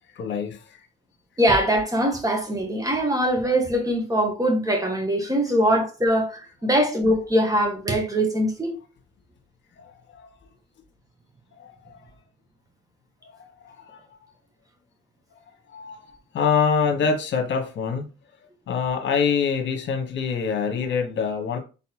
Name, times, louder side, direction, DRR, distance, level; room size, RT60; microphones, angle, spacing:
voice 1, 0.1-0.6 9.8-10.3 11.6-12.0 13.2-14.0 15.7-16.0 16.3-18.0 18.7-21.6, left 6 dB, 65° left, 1.4 m, -25 dB
voice 2, 1.4-8.7, equal, 15° right, 1.5 m, -22 dB
4.1 x 4.1 x 3.0 m
cardioid pair, 90°, 20 cm